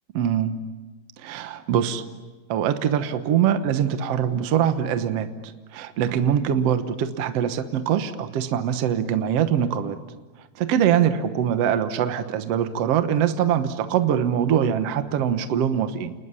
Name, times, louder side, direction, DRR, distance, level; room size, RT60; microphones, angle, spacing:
voice 1, 0.1-0.6 1.2-2.0 2.5-5.3 5.7-10.0 10.6-16.1, right 9 dB, 60° right, 9 dB, 1.7 m, -23 dB
29.5 x 20.5 x 9.7 m, 1.2 s
omnidirectional pair, 4.2 m